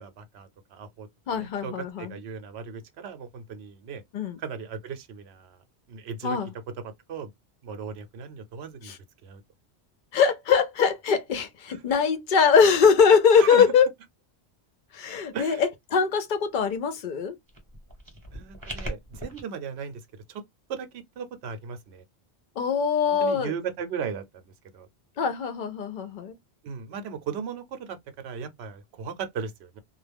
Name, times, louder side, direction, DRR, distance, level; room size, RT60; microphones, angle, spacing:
voice 1, 0.0-4.0 4.4-5.6 5.9-6.4 6.8-7.3 7.6-8.9 9.2-9.4 11.7-11.8 13.4-13.7 15.3-15.6 18.3-20.0 20.3-20.4 20.7-22.0 23.2-24.9 26.6-29.8, right 6 dB, 75° right, 0.8 m, -37 dB
voice 2, 1.3-2.1 4.1-4.4 6.2-6.5 8.9-9.0 10.1-13.9 14.9-17.4 22.6-23.5 25.2-26.3, left 6 dB, 55° left, 0.6 m, -22 dB
sound 1, 17.5-19.4, right 1 dB, 20° right, 0.8 m, -39 dB
2.3 x 2.0 x 3.3 m
omnidirectional pair, 1.1 m